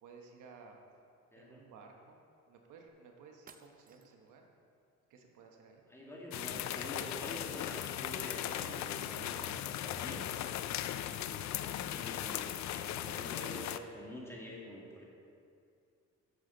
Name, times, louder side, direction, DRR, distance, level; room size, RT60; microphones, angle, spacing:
voice 1, 0.0-0.8 1.3-2.2 2.5-4.4 5.1-5.8, right 5 dB, 80° right, 2 dB, 1.1 m, -56 dB
voice 2, 1.3-1.6 5.9-10.3 11.0-15.0, left 1 dB, 10° left, -3 dB, 1.9 m, -47 dB
sound 1, 2.9-3.0 3.5-4.4, right 5 dB, 30° right, 0.5 m, -59 dB
sound 2, 6.3-13.8, left 12 dB, 65° left, 0.4 m, -38 dB
9.9 x 6.7 x 3.9 m, 2.5 s
cardioid pair, 90°, 30 cm